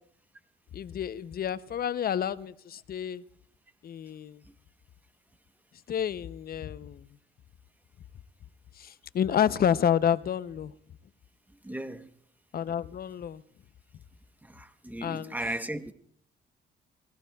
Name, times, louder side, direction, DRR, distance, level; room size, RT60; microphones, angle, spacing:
voice 1, 0.7-3.2 3.8-4.4 5.9-7.1 8.8-10.7 12.5-13.4 15.0-15.3, left 9 dB, 50° left, 0.6 m, -29 dB
voice 2, 11.6-12.1 14.4-15.9, right 1 dB, 10° right, 1.0 m, -36 dB
26.5 x 17.0 x 2.3 m
cardioid pair, 90°, 20 cm